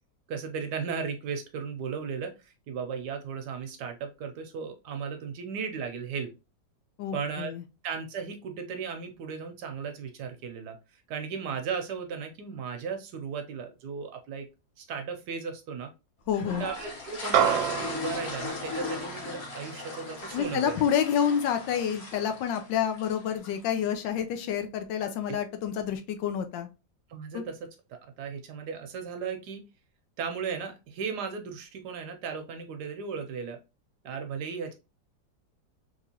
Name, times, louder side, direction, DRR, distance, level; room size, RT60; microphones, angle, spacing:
voice 1, 0.3-6.3 7.1-7.6 7.8-14.5 14.8-15.9 16.6-20.7 25.3-25.4 27.1-27.6 28.2-29.6 30.2-33.6 34.0-34.7, right 6 dB, 70° right, 5 dB, 1.1 m, -36 dB
voice 2, 7.0-7.6 16.3-16.6 20.3-26.7 27.3-27.4, left 8 dB, 80° left, 7 dB, 1.3 m, -28 dB
sound 1, 16.3-23.6, left 3 dB, 45° left, 1.0 m, -38 dB
sound 2, 17.3-22.0, right 9 dB, 85° right, 1.3 m, -31 dB
3.6 x 3.0 x 2.8 m, 0.28 s
omnidirectional pair, 2.0 m